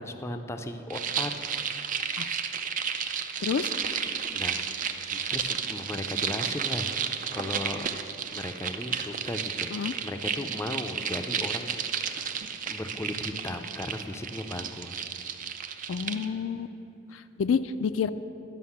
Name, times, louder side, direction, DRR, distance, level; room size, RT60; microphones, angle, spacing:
voice 1, 0.0-1.3 4.3-4.6 5.1-7.9 8.3-9.7 10.0-12.3 12.7-15.1, left 1 dB, 15° left, 6 dB, 0.4 m, -36 dB
sound 1, 0.9-16.3, right 7 dB, 40° right, 0.4 m, -32 dB
voice 2, 3.4-3.7 9.7-9.9 15.9-16.7 17.1-18.1, left 6 dB, 80° left, 11 dB, 0.4 m, -29 dB
11.5 x 5.8 x 7.1 m, 2.9 s
head